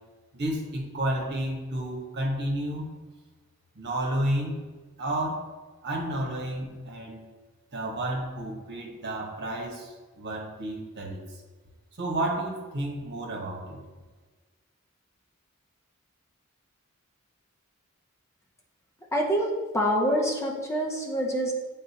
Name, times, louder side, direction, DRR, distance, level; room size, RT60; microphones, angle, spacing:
voice 1, 0.3-2.9 3.7-4.6 5.0-5.4 5.8-7.2 7.7-11.2 12.0-13.8, right 1 dB, 50° right, -1 dB, 1.3 m, -31 dB
voice 2, 19.1-19.5 19.7-21.5, equal, 15° left, -1 dB, 0.6 m, -26 dB
8.9 x 3.7 x 2.9 m, 1.3 s
head